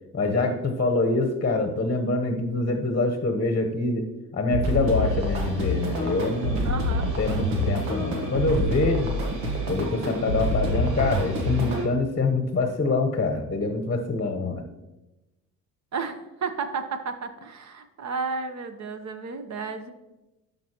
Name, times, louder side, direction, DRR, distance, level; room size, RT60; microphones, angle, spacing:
voice 1, 0.1-6.7 7.0-9.1 9.7-14.6, left 3 dB, 25° left, 6 dB, 1.0 m, -25 dB
sound 1, 4.5-11.8, equal, 80° right, 1.5 m, -27 dB
voice 2, 6.6-7.1 15.9-19.9, right 5 dB, 40° right, 8 dB, 1.0 m, -32 dB
12.0 x 5.3 x 3.0 m, 1.0 s
hypercardioid pair, 60°, 42 cm